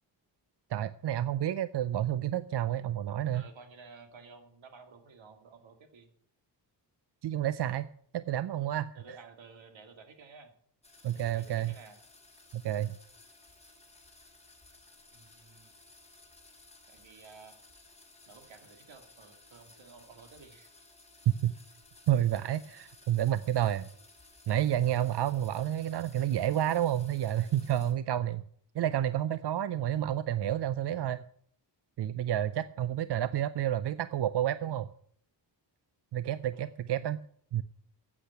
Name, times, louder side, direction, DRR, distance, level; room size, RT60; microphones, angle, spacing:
voice 1, 0.7-3.5 7.2-7.9 8.1-9.0 11.0-11.7 12.5-12.9 21.4-21.5 22.1-23.9 24.5-28.4 28.7-31.2 32.0-34.9 36.1-37.2 37.5-37.6, right 11 dB, 65° right, 15 dB, 0.6 m, -30 dB
voice 2, 3.3-6.1 8.9-10.5 11.1-12.0 15.1-15.8 16.9-17.6 18.3-20.7 29.5-29.8 30.7-30.8 36.5-36.7, right 4 dB, 85° right, 7 dB, 2.2 m, -53 dB
sound 1, 10.8-27.9, left 2 dB, 15° left, 3.1 m, -58 dB
10.5 x 8.5 x 8.0 m, 0.63 s
wide cardioid pair, 110°, 44 cm